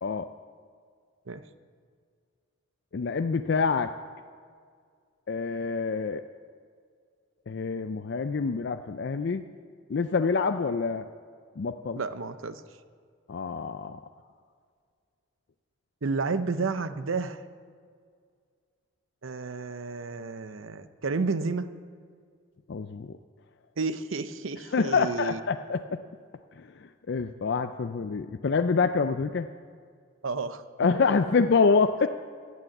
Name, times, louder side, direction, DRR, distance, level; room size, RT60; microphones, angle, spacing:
voice 1, 2.9-3.9 5.3-6.2 7.5-9.4 9.9-11.1 11.6-12.0 13.3-14.0 22.7-23.1 24.7-26.0 26.6-29.5 30.8-32.1, left 4 dB, 55° left, 8 dB, 0.4 m, -26 dB
voice 2, 11.9-12.6 16.0-17.4 19.2-21.7 23.8-25.4 30.2-30.6, right 4 dB, 70° right, 12 dB, 0.7 m, -31 dB
14.5 x 9.3 x 7.8 m, 2.1 s
head